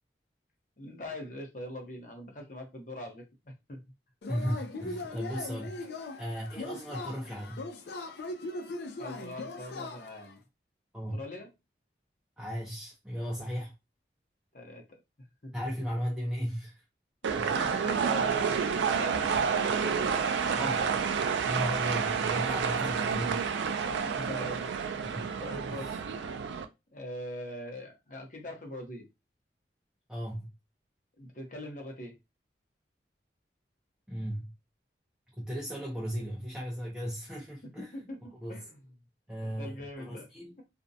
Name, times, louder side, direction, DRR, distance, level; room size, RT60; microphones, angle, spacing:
voice 1, 0.8-3.8 9.0-10.4 11.1-11.5 14.5-14.9 15.4-15.5 17.2-18.5 18.8-20.6 23.9-24.8 25.4-25.9 26.9-29.1 31.2-32.2 37.8-38.7 39.4-40.3, left 1 dB, 45° left, 0.7 m, -42 dB
Yell / Cheering, 4.2-10.3, left 2 dB, 70° left, 0.4 m, -40 dB
voice 2, 4.3-7.7 10.9-11.2 12.4-13.7 15.5-16.8 17.3-17.5 20.6-20.9 21.4-23.4 25.0-25.3 25.7-26.0 30.1-30.5 34.1-34.5 35.4-37.9 38.4-38.6 39.3-40.5, equal, 5° right, 0.5 m, -36 dB
sound 1, 17.2-26.6, right 6 dB, 85° right, 0.3 m, -29 dB
2.5 x 2.1 x 2.6 m
head